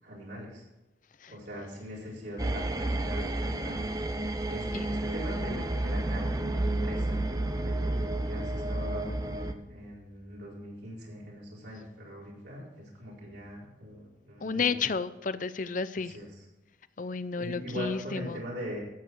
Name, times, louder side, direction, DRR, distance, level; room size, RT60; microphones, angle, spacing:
voice 1, 0.0-0.6 1.3-3.8 4.5-14.7 15.9-16.4 17.3-18.8, equal, 75° right, -5 dB, 4.5 m, -41 dB
sound 1, 2.4-9.5, right 1 dB, 20° right, 0.7 m, -31 dB
voice 2, 14.4-16.1 17.0-18.4, left 5 dB, 45° left, 14 dB, 0.6 m, -31 dB
14.0 x 8.6 x 4.6 m, 1.0 s
head